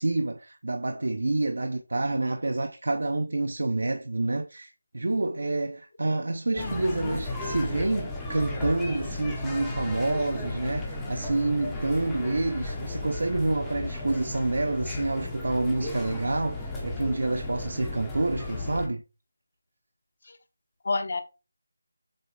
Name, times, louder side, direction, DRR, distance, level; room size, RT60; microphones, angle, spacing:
voice 1, 0.0-19.0, right 2 dB, 65° right, 0.8 m, -28 dB
voice 2, 6.5-7.1 20.3-20.4 20.8-21.2, left 3 dB, 40° left, 1.0 m, -31 dB
sound 1, 6.6-18.9, left 2 dB, 5° left, 0.8 m, -35 dB
7.7 x 4.1 x 3.8 m
figure-of-eight pair, 180°, 0 cm